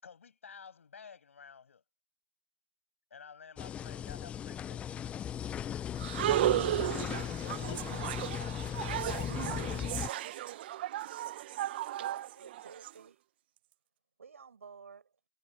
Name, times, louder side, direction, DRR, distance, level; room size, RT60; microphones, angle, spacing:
voice 1, 0.0-1.8 3.1-4.8, left 6 dB, 75° left, 7.8 m, -52 dB
sound 1, 3.6-10.1, left 9 dB, 15° left, 1.0 m, -37 dB
sound 2, 6.0-12.9, right 14 dB, 50° right, 1.5 m, -34 dB
voice 2, 6.4-10.8, left 30 dB, 35° left, 8.0 m, -52 dB
voice 3, 12.0-13.2 14.2-15.1, right 6 dB, 75° right, 6.5 m, -51 dB
hypercardioid pair, 130°, 7 cm